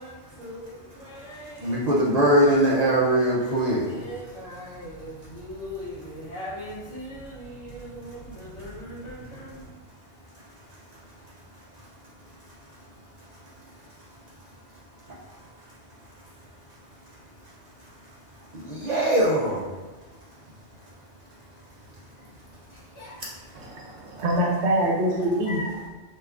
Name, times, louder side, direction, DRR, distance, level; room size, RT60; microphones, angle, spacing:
voice 1, 0.0-1.8 2.2-3.2 3.8-9.7 22.9-23.1 25.2-25.9, equal, 70° left, -11 dB, 1.2 m, -40 dB
voice 2, 1.6-3.9 18.7-19.6, right 1 dB, 50° right, -5 dB, 0.5 m, -21 dB
voice 3, 23.6-25.6, right 1 dB, 70° right, -1 dB, 0.9 m, -24 dB
3.3 x 3.0 x 2.4 m, 1.2 s
omnidirectional pair, 1.3 m